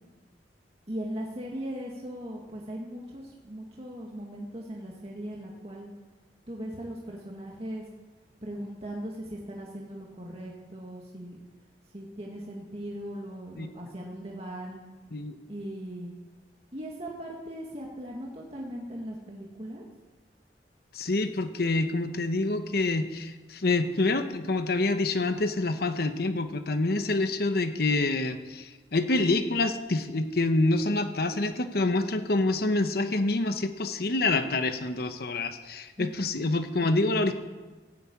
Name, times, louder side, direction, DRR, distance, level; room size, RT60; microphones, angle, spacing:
voice 1, 0.9-5.9 6.5-7.8 8.4-11.4 11.9-14.8 15.5-16.1 16.7-19.9 36.0-36.6, right 1 dB, 35° right, -2 dB, 1.9 m, -39 dB
voice 2, 20.9-37.3, left 2 dB, 60° left, 8 dB, 1.0 m, -27 dB
16.0 x 8.5 x 8.6 m, 1.3 s
head